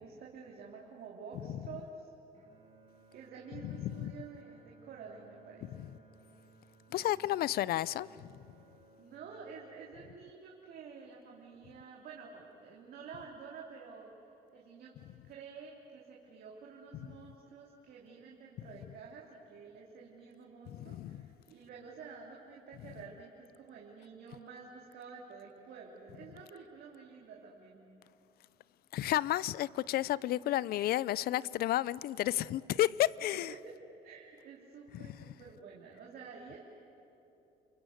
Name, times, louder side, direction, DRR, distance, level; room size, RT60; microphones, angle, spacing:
voice 1, 0.0-2.1 3.1-5.9 9.0-14.1 14.5-14.9 15.2-27.8 33.5-33.7 34.0-36.6, right 5 dB, 65° right, 3.2 m, -50 dB
Bowed string instrument, 2.3-10.6, right 3 dB, 40° right, 5.9 m, -62 dB
voice 2, 3.6-4.1 6.9-8.1 20.7-21.2 28.9-33.5, left 14 dB, 65° left, 0.6 m, -31 dB
30.0 x 22.5 x 8.0 m
cardioid pair, 110°, 17 cm